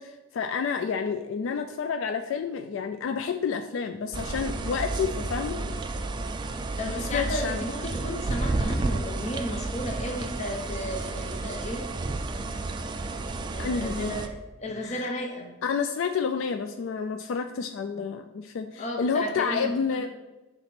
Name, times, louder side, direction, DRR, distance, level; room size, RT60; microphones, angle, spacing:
voice 1, 0.0-5.8 7.0-7.6 13.6-14.1 14.8-15.1 15.6-20.1, left 6 dB, 65° left, 7 dB, 0.3 m, -29 dB
sound 1, 4.1-14.3, right 2 dB, 20° right, 0.3 m, -31 dB
voice 2, 6.8-11.9 13.5-15.5 18.8-19.7 20.0-20.1, equal, 35° left, 1 dB, 0.7 m, -34 dB
5.9 x 3.9 x 4.2 m, 1.1 s
head